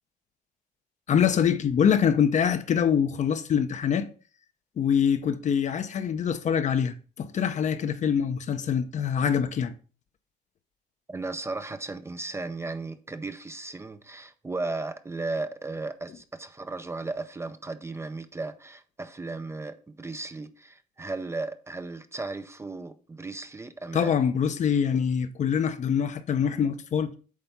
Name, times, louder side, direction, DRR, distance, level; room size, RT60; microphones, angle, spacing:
voice 1, 1.1-4.1 4.8-9.7 23.9-27.1, left 7 dB, 45° left, 0.7 m, -24 dB
voice 2, 11.1-24.1, right 3 dB, 15° right, 0.5 m, -35 dB
8.4 x 3.4 x 5.4 m
cardioid pair, 110°, 17 cm